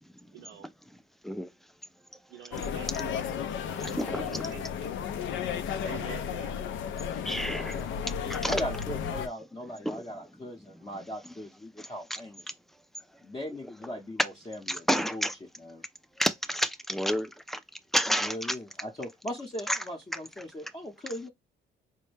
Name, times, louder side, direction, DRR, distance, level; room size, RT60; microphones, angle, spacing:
voice 1, 0.3-0.7 2.3-5.0 5.8-6.6, right 8 dB, 85° right, 0.6 m, -47 dB
sound 1, 2.5-9.3, left 8 dB, 75° left, 0.5 m, -33 dB
voice 2, 3.8-4.5 7.2-7.8 8.3-8.6 9.9-10.0 14.7-15.3 16.2-17.6 17.9-18.4 19.7-19.8, equal, ahead, 0.4 m, -29 dB
voice 3, 7.5-8.1 8.5-12.5 13.2-15.3 15.6-15.8 18.2-21.3, left 1 dB, 20° left, 0.7 m, -39 dB
4.3 x 2.2 x 3.2 m
cardioid pair, 90°, 20 cm